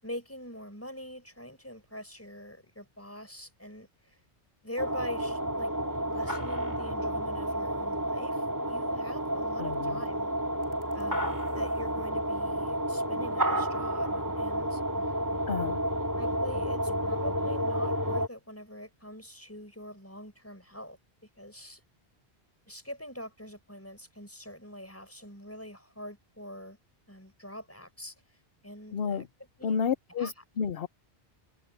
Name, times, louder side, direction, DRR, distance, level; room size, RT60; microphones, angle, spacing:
voice 1, 0.0-4.2 4.6-5.7 6.1-10.3 10.9-14.8 16.2-21.8 22.7-26.8 27.1-28.1 28.6-29.2 29.6-29.8 30.2-30.3, equal, 15° left, 5.6 m, -43 dB
sound 1, 4.8-18.3, equal, 15° right, 2.6 m, -30 dB
voice 2, 9.6-10.0 15.5-15.8 28.9-29.3 29.6-30.9, left 6 dB, 60° left, 0.9 m, -31 dB
omnidirectional pair, 1.1 m